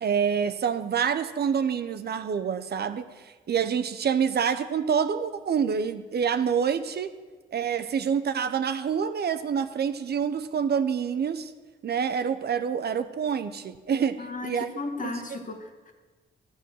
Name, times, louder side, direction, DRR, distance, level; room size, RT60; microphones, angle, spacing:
voice 1, 0.0-7.1 7.5-11.5 11.8-14.7 15.0-15.1, right 7 dB, 60° right, 10 dB, 0.7 m, -27 dB
voice 2, 14.2-15.9, left 3 dB, 45° left, 4 dB, 1.7 m, -35 dB
12.5 x 7.8 x 6.2 m, 1.4 s
cardioid pair, 60°, 19 cm